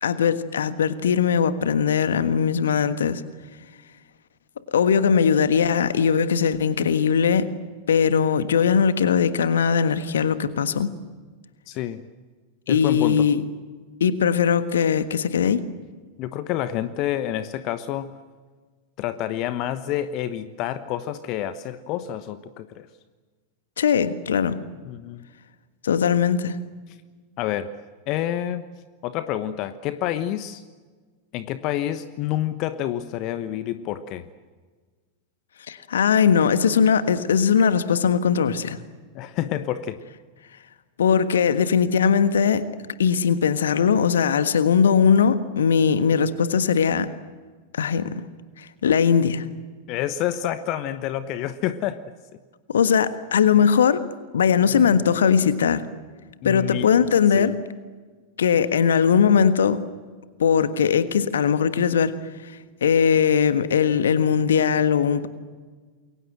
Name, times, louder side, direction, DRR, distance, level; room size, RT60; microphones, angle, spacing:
voice 1, 0.0-3.2 4.7-7.5 7.9-10.9 12.7-13.4 14.0-15.6 23.8-24.6 25.8-26.6 35.7-38.8 41.0-42.6 43.0-47.1 47.7-48.1 48.6-49.4 52.7-54.0 54.3-55.8 56.4-57.5 58.4-59.8 60.4-62.2 62.8-65.3, left 7 dB, 65° left, 12 dB, 1.5 m, -20 dB
voice 2, 11.7-12.0 12.7-13.3 16.2-18.2 19.0-22.9 24.8-25.2 27.4-27.7 28.1-28.7 29.0-30.6 31.3-34.3 39.1-40.0 49.9-52.0 54.6-55.0 56.4-56.9 57.3-57.5, left 12 dB, 40° left, 13 dB, 1.1 m, -28 dB
28.5 x 23.0 x 7.9 m, 1.4 s
figure-of-eight pair, 90°, 0 cm